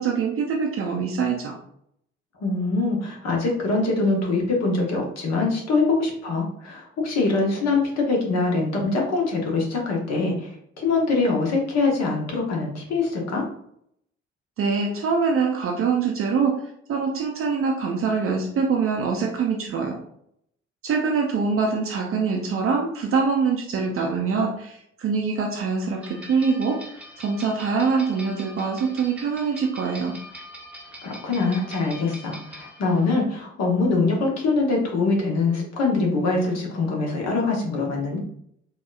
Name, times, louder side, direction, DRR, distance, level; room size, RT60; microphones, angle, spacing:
voice 1, 0.0-1.6 14.6-16.6 16.9-20.0 20.8-30.1, right 5 dB, 40° right, 0 dB, 0.6 m, -24 dB
voice 2, 2.4-10.5 10.8-13.4 31.0-38.2, left 3 dB, 50° left, 0 dB, 1.1 m, -23 dB
sound 1, 26.0-33.1, equal, 5° right, 0.9 m, -43 dB
4.1 x 2.3 x 2.4 m, 0.70 s
figure-of-eight pair, 45°, 35 cm